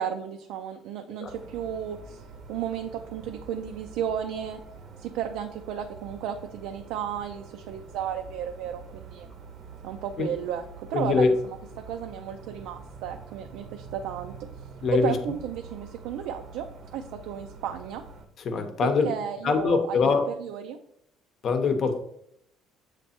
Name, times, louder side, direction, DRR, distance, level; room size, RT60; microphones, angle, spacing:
voice 1, 0.0-2.2 2.5-4.6 5.0-9.3 9.8-10.6 10.9-11.3 11.9-14.3 15.0-16.7 16.9-18.0 18.8-20.0 20.4-20.8, right 9 dB, 80° right, 5 dB, 0.4 m, -33 dB
sound 1, 1.2-18.3, right 4 dB, 45° right, 0.7 m, -46 dB
voice 2, 10.9-11.3 14.8-15.1 18.4-19.1 19.4-20.3 21.4-21.9, left 4 dB, 40° left, 7 dB, 0.8 m, -23 dB
7.4 x 3.3 x 4.2 m, 0.75 s
cardioid pair, 145°, 0 cm